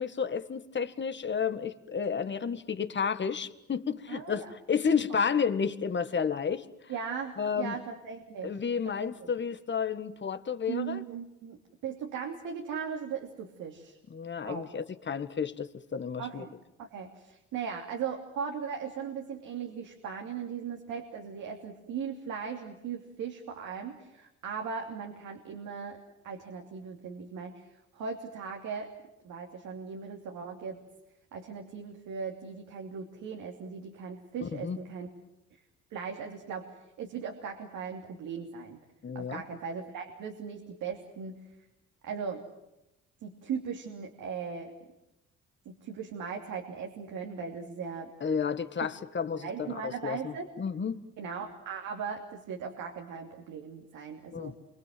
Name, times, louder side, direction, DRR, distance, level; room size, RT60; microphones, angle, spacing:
voice 1, 0.0-6.6 7.4-7.8 8.4-11.0 14.1-16.4 34.4-34.8 39.0-39.4 48.2-51.0 54.3-54.6, left 6 dB, 40° left, 10 dB, 1.7 m, -31 dB
voice 2, 4.1-4.5 6.9-8.5 8.8-9.3 10.7-14.0 14.4-14.6 16.2-16.5 16.8-26.0 26.2-27.7 27.9-28.9 29.2-30.8 31.3-35.1 35.5-35.6 35.9-36.6 37.0-38.8 39.1-41.3 42.0-42.4 43.2-44.7 45.6-48.1 49.4-50.5 51.2-54.6, right 6 dB, 85° right, 1 dB, 3.0 m, -38 dB
28.5 x 24.5 x 7.8 m, 0.90 s
cardioid pair, 90°, 30 cm